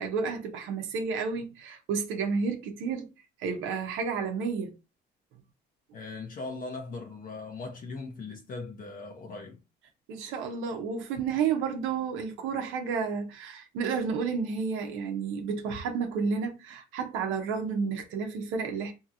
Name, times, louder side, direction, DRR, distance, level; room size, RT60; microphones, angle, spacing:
voice 1, 0.0-3.1 3.4-4.7 10.1-18.9, right 5 dB, 85° right, 0.7 m, -31 dB
voice 2, 5.9-9.6, left 3 dB, 45° left, 0.7 m, -39 dB
2.8 x 2.8 x 2.5 m
cardioid pair, 105°, 20 cm